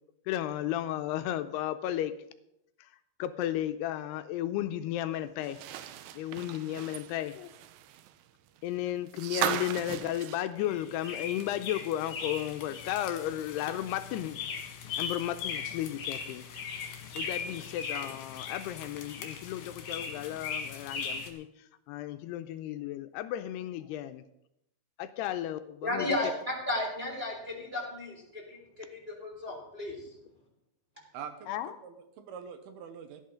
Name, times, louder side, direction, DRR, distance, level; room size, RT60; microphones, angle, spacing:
voice 1, 0.3-2.1 3.2-5.6 6.1-7.5 8.6-14.4 15.0-16.4 17.2-21.5 21.9-24.2 25.0-26.1 31.5-31.8, left 12 dB, 80° left, 2.5 m, -34 dB
sound 1, 5.4-11.5 11.8-11.9 13.3-13.4, right 11 dB, 90° right, 2.0 m, -37 dB
sound 2, 10.6-21.3, left 6 dB, 60° left, 3.1 m, -39 dB
voice 2, 25.8-29.9, left 1 dB, 15° right, 2.9 m, -34 dB
voice 3, 31.1-33.2, right 7 dB, 75° right, 2.7 m, -44 dB
17.0 x 11.5 x 3.8 m
omnidirectional pair, 5.1 m